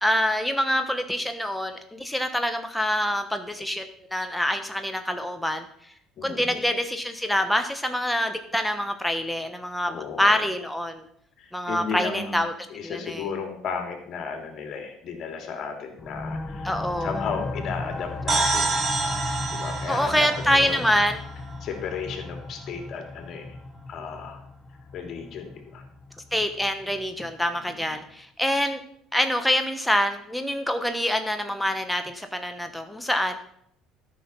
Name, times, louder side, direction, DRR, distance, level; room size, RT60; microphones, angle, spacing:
voice 1, 0.0-5.6 6.2-11.0 11.5-12.5 12.8-13.2 16.6-17.2 19.9-21.2 26.3-28.8 29.1-33.4, equal, 5° left, 7 dB, 1.1 m, -25 dB
voice 2, 6.2-6.6 9.9-10.5 11.4-12.4 12.7-16.7 17.0-20.9 21.6-23.5 23.9-24.4 24.9-25.8 27.6-28.0, left 5 dB, 50° left, 4 dB, 2.6 m, -34 dB
sound 1, 16.0-27.3, left 3 dB, 30° left, 1.1 m, -36 dB
sound 2, 18.3-21.9, right 3 dB, 35° right, 2.2 m, -28 dB
13.0 x 6.1 x 5.6 m, 0.70 s
hypercardioid pair, 60°, 0 cm